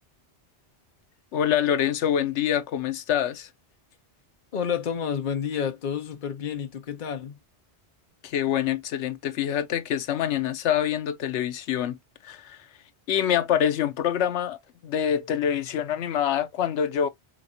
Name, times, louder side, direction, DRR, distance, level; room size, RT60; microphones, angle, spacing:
voice 1, 1.3-3.5 8.2-12.0 12.2-12.6 13.1-17.1, left 9 dB, 85° left, 0.9 m, -25 dB
voice 2, 4.5-7.4, left 7 dB, 50° left, 0.9 m, -30 dB
5.0 x 2.6 x 2.6 m
omnidirectional pair, 1.2 m